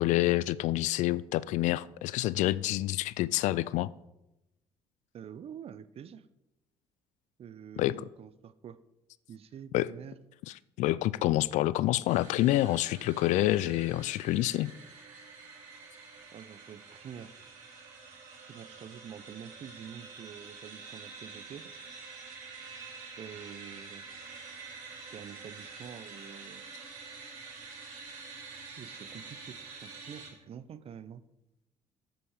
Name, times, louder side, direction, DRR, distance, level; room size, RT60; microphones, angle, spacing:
voice 1, 0.0-3.9 7.8-8.1 9.7-9.9 10.8-14.7, left 16 dB, 70° left, 0.4 m, -27 dB
voice 2, 5.1-6.3 7.4-8.8 9.3-10.2 16.3-17.3 18.5-21.7 23.2-24.3 25.1-26.6 28.7-31.2, right 8 dB, 50° right, 0.7 m, -47 dB
sound 1, 12.1-30.3, right 4 dB, 70° right, 2.9 m, -47 dB
8.9 x 7.9 x 4.9 m
hypercardioid pair, 60°, 13 cm